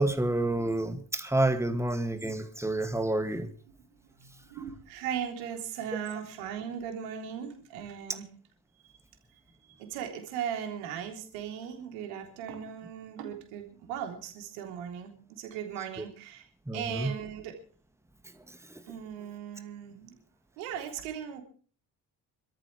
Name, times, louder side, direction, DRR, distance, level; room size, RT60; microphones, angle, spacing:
voice 1, 0.0-3.5 16.7-17.1, right 1 dB, 5° right, 9 dB, 2.3 m, -28 dB
voice 2, 4.2-8.3 9.6-16.5 16.7-17.6 18.9-20.1 20.6-21.4, right 8 dB, 70° right, 4 dB, 3.7 m, -38 dB
26.0 x 14.0 x 3.4 m, 0.42 s
figure-of-eight pair, 45°, 49 cm